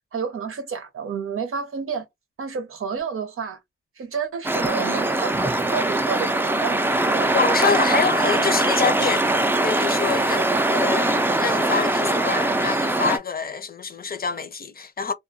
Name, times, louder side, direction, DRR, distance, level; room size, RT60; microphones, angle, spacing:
voice 1, 0.1-2.0 2.4-3.6 4.0-6.8 7.1-7.3 10.4-10.5, right 6 dB, 85° right, 0.7 m, -30 dB
sound 1, 4.4-13.2, right 2 dB, 10° right, 0.3 m, -22 dB
voice 2, 7.3-9.3 9.6-10.4 10.7-15.1, left 5 dB, 45° left, 0.5 m, -26 dB
2.3 x 2.1 x 2.7 m
cardioid pair, 65°, 21 cm